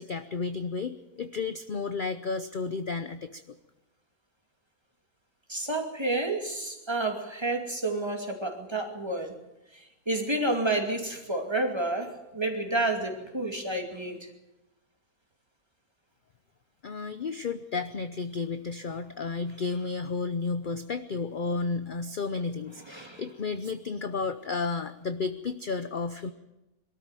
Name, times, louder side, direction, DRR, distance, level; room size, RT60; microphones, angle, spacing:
voice 1, 0.0-3.4 16.8-26.3, left 4 dB, 45° left, 11 dB, 0.7 m, -32 dB
voice 2, 5.5-9.4 9.7-14.3 22.8-23.2, right 2 dB, 15° right, 3 dB, 2.5 m, -30 dB
23.0 x 13.5 x 9.1 m, 0.99 s
omnidirectional pair, 1.6 m